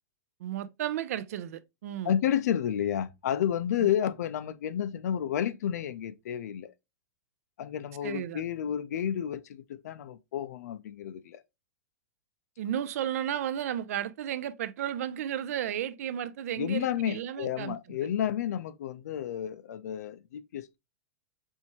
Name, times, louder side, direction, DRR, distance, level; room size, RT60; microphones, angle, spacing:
voice 1, 0.4-2.1 8.0-8.4 12.6-17.8, right 10 dB, 60° right, 0.4 m, -33 dB
voice 2, 2.0-6.7 7.6-11.4 16.6-20.8, left 9 dB, 70° left, 0.5 m, -31 dB
4.4 x 3.4 x 2.8 m
supercardioid pair, 170°, 9 cm